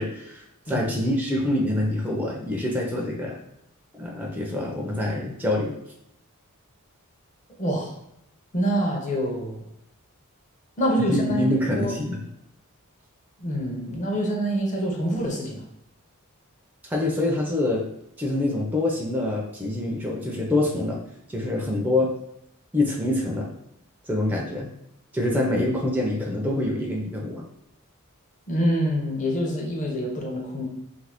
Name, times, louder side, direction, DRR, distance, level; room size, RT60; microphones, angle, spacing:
voice 1, 0.0-3.3 3.9-5.7 11.1-12.2 16.9-17.8 18.2-21.0 21.3-22.1 22.7-23.5 24.1-24.7 25.1-27.4, left 1 dB, 10° right, -2 dB, 0.4 m, -25 dB
voice 2, 7.6-7.9 8.5-9.6 10.8-11.4 11.8-11.9 13.4-15.6 28.5-30.7, equal, 35° left, 0 dB, 0.6 m, -26 dB
2.8 x 2.5 x 3.4 m, 0.79 s
head